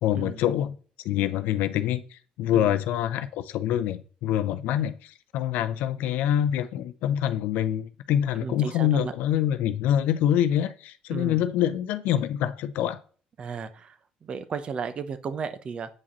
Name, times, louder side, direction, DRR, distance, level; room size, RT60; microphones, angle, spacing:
voice 1, 0.0-0.8 1.0-13.0, left 11 dB, 75° left, 0.5 m, -25 dB
voice 2, 8.4-9.1 11.1-11.4 13.4-15.9, right 6 dB, 40° right, 0.7 m, -34 dB
8.4 x 4.9 x 3.0 m
cardioid pair, 125°, 3 cm